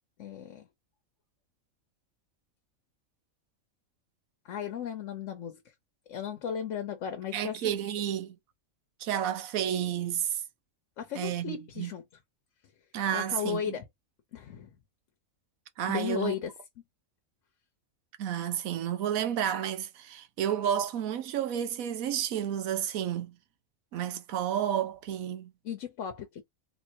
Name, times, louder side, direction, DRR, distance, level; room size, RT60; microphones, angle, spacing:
voice 1, 0.2-0.6 4.4-5.6 6.1-7.7 11.0-12.0 13.1-13.8 14.3-14.7 15.9-16.5 25.6-26.4, left 8 dB, 65° left, 1.0 m, -35 dB
voice 2, 7.3-8.4 9.0-10.4 11.1-11.9 12.9-13.8 15.8-16.3 18.2-23.3 23.9-25.5, right 10 dB, 80° right, 1.1 m, -31 dB
3.6 x 3.1 x 2.7 m
omnidirectional pair, 1.4 m